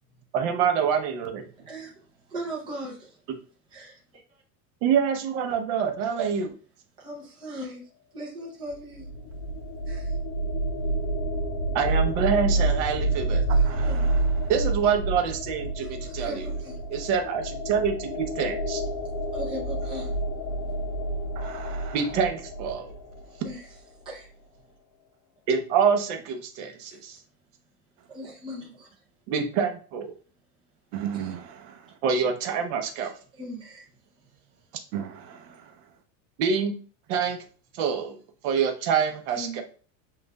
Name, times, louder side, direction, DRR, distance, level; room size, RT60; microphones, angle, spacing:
voice 1, 0.3-1.5 4.8-6.5 11.7-13.4 14.5-16.5 16.9-18.8 21.9-22.9 25.5-27.2 29.3-30.1 32.0-33.1 36.4-36.8 37.1-37.4 37.7-38.2 38.4-39.6, right 6 dB, 45° right, 0.8 m, -26 dB
voice 2, 1.6-2.0 2.3-3.2 3.7-4.0 7.0-9.1 9.9-10.2 13.5-14.1 15.7-16.8 19.3-20.1 23.3-23.7 24.0-24.3 26.8-27.0 28.1-28.9 31.1-31.3 33.4-33.9 39.3-39.6, right 1 dB, 10° right, 0.5 m, -39 dB
sound 1, 8.7-23.6, right 2 dB, 60° left, 0.7 m, -28 dB
voice 3, 13.6-14.5 21.3-22.0 30.9-31.9 34.9-35.7, right 9 dB, 80° right, 0.9 m, -37 dB
7.3 x 2.5 x 2.2 m
supercardioid pair, 170°, 50 cm